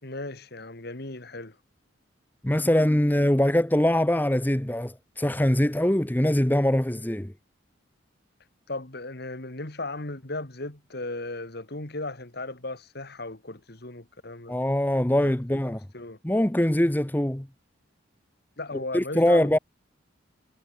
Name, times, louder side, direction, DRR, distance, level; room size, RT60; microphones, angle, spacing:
voice 1, 0.0-1.6 8.7-14.6 15.2-15.6 15.9-16.2 18.6-19.6, left 2 dB, 55° left, 2.3 m, -36 dB
voice 2, 2.4-7.3 14.5-15.8 16.2-17.5 18.9-19.6, left 1 dB, 10° left, 0.8 m, -23 dB
head